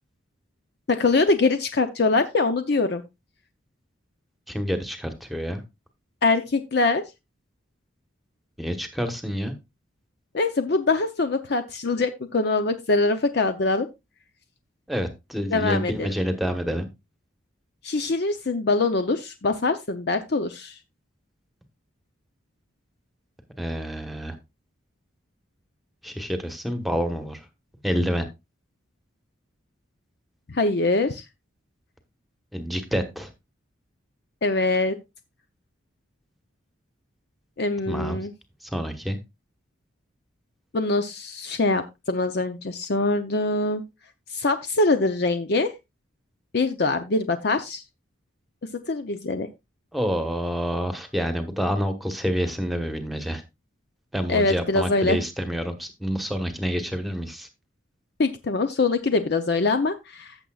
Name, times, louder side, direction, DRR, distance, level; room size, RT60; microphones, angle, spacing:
voice 1, 0.9-3.0 6.2-7.0 10.3-13.9 15.5-16.1 17.8-20.8 30.5-31.2 34.4-35.0 37.6-38.3 40.7-43.8 44.3-45.7 46.5-47.8 48.9-49.5 54.3-55.2 58.2-60.4, left 3 dB, 55° left, 0.6 m, -23 dB
voice 2, 4.5-5.6 8.6-9.5 14.9-16.9 23.6-24.3 26.0-27.4 27.8-28.2 32.5-33.3 37.9-38.3 38.6-39.2 49.9-53.4 54.1-57.5, equal, ahead, 1.1 m, -28 dB
14.5 x 6.9 x 2.4 m
head